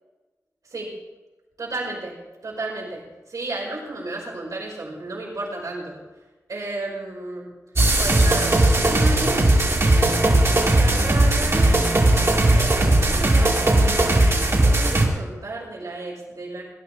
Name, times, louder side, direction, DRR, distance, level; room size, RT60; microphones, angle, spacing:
voice 1, 1.6-2.2 2.4-6.0 6.5-7.5 8.0-9.4 10.7-16.6, right 2 dB, 85° right, -4 dB, 5.6 m, -33 dB
sound 1, 7.8-15.1, right 2 dB, 50° right, 2.6 m, -18 dB
19.5 x 11.0 x 4.3 m, 1.2 s
wide cardioid pair, 85°, 6 cm